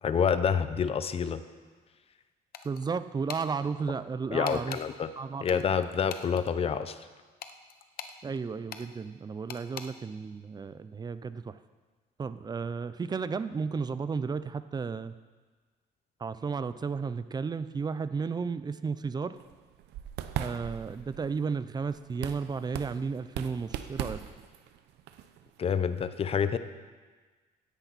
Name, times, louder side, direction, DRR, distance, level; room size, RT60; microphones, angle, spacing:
voice 1, 0.0-1.4 4.3-5.1 5.4-7.0 25.6-26.6, left 7 dB, 35° left, 11 dB, 0.7 m, -27 dB
sound 1, 2.5-2.9 3.3-3.5 4.4-4.8 5.5-6.5 7.4-8.2 8.7-8.9 9.5-9.9, left 8 dB, 60° left, 0.9 m, -42 dB
voice 2, 2.6-4.8 5.2-5.4 8.2-11.6 12.2-15.2 16.2-19.4 20.4-24.2, right 5 dB, 25° right, 13 dB, 0.5 m, -33 dB
sound 2, 19.3-26.0, right 11 dB, 80° right, 0.8 m, -40 dB
16.5 x 10.5 x 4.2 m, 1.4 s
cardioid pair, 110°, 17 cm